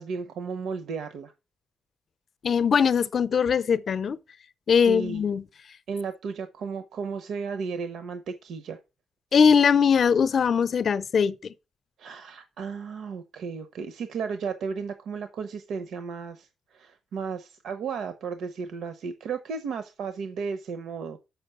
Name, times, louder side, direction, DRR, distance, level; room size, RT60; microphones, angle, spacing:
voice 1, 0.0-1.3 4.8-5.2 5.9-8.8 12.0-21.2, right 5 dB, 75° right, 0.8 m, -34 dB
voice 2, 2.4-4.2 4.7-5.4 9.3-11.5, left 6 dB, 45° left, 0.6 m, -21 dB
7.3 x 6.0 x 6.7 m
wide cardioid pair, 165°, 0 cm